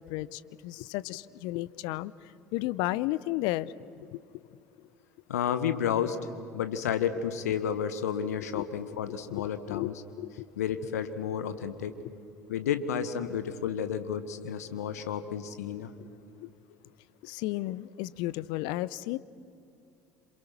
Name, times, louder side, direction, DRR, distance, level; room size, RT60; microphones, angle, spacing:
voice 1, 0.0-3.7 4.1-4.2 8.5-8.6 9.3-9.9 10.2-10.5 16.0-16.1 16.4-16.5 17.2-19.2, left 17 dB, 60° left, 19 dB, 0.7 m, -33 dB
voice 2, 5.3-6.2 6.5-10.0 10.6-11.9 12.5-15.9, left 8 dB, 75° left, 11 dB, 1.6 m, -31 dB
28.5 x 27.5 x 6.0 m, 2.7 s
figure-of-eight pair, 65°, 9 cm